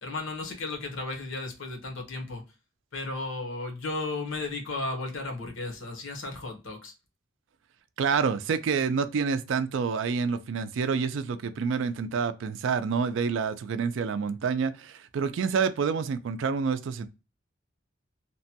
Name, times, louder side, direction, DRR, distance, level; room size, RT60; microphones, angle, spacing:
voice 1, 0.0-2.4 2.9-6.9, left 2 dB, 70° left, 0.9 m, -34 dB
voice 2, 8.0-17.1, right 5 dB, 70° right, 0.3 m, -28 dB
2.9 x 2.2 x 2.7 m
head